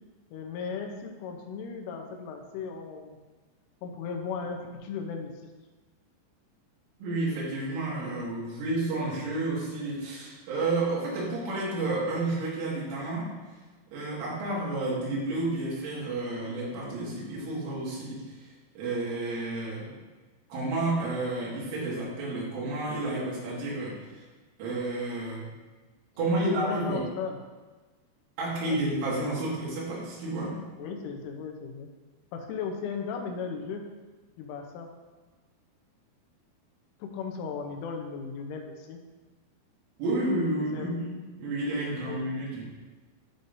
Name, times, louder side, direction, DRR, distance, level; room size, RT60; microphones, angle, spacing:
voice 1, 0.3-3.2 3.8-5.3 26.2-27.4 28.6-28.8 30.8-31.9 32.3-33.9 34.4-34.9 37.0-39.0 40.7-40.9 42.1-42.2, left 5 dB, 85° left, 3 dB, 3.4 m, -36 dB
voice 2, 7.0-13.3 13.9-18.5 18.8-19.9 20.5-24.2 24.6-25.4 26.2-27.0 28.4-30.6 40.0-42.6, right 2 dB, 85° right, -6 dB, 4.5 m, -31 dB
13.0 x 5.3 x 2.7 m, 1.3 s
omnidirectional pair, 5.5 m